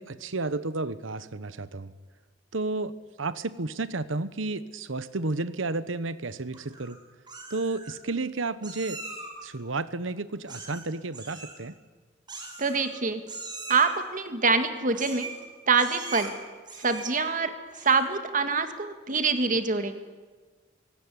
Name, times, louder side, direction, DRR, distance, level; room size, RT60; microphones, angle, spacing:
voice 1, 0.0-1.9 2.5-2.9 3.2-7.0 7.5-9.0 9.4-11.8, right 3 dB, 85° right, 15 dB, 1.1 m, -32 dB
Meow, 6.5-6.9 7.3-8.0 8.6-9.4 10.5-10.9 11.1-11.6 12.3-13.0 13.3-14.0 14.9-15.4 15.8-16.3 16.7-17.3 17.7-18.1, right 3 dB, 25° right, 4.5 m, -41 dB
voice 2, 12.6-13.2 13.7-15.3 15.7-16.3 16.8-17.5 17.8-20.0, right 4 dB, 45° right, 8 dB, 2.0 m, -25 dB
23.5 x 17.5 x 9.9 m, 1.4 s
head